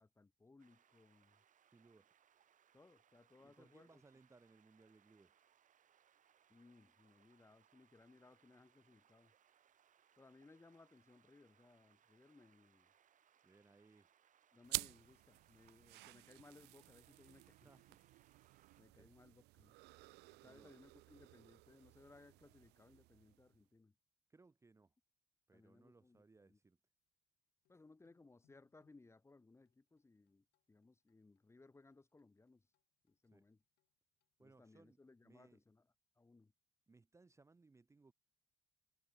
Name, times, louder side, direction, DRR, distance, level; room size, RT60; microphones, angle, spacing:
voice 1, 0.0-1.4 2.7-4.0 6.5-9.3 10.2-12.9 14.5-18.0 18.8-19.7 20.3-23.9 25.5-26.6 27.7-32.7 33.0-33.6 34.4-35.9 36.2-36.5, left 3 dB, 15° left, 1.2 m, -65 dB
sound 1, 0.6-18.8, right 9 dB, 50° right, 3.3 m, -74 dB
voice 2, 1.7-2.1 3.4-5.3 13.4-14.1 17.6-17.8 19.0-19.1 20.4-20.7 24.3-24.9 25.5-26.8 33.3-33.4 34.4-35.6 36.9-38.1, right 3 dB, 15° right, 1.0 m, -66 dB
sound 2, 14.6-23.6, right 21 dB, 80° right, 0.4 m, -51 dB
sound 3, 28.0-35.2, left 17 dB, 85° left, 5.8 m, -87 dB
cardioid pair, 110°, 17 cm